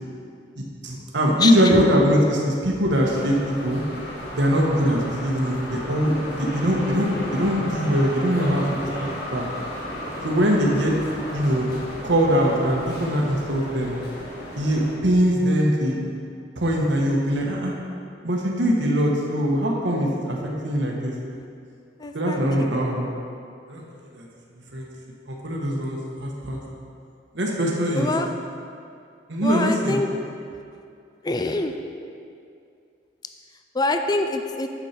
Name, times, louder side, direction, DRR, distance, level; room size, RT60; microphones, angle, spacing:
voice 1, 0.6-3.8 4.3-8.9 9.3-9.5 10.2-10.9 11.3-11.7 12.0-13.9 14.6-15.9 16.6-17.7 18.2-21.1 22.1-23.0 23.7-23.9 24.1-24.3 24.7-24.9 25.3-26.6 27.3-28.1 29.3-30.0, equal, 85° right, -2 dB, 1.4 m, -22 dB
sound 1, 3.0-14.9, equal, 60° left, 2.1 m, -34 dB
voice 2, 22.0-22.7 27.9-28.3 29.4-30.1 31.2-31.7 33.7-34.7, left 2 dB, 20° left, 6 dB, 0.4 m, -25 dB
9.9 x 7.3 x 4.4 m, 2.4 s
head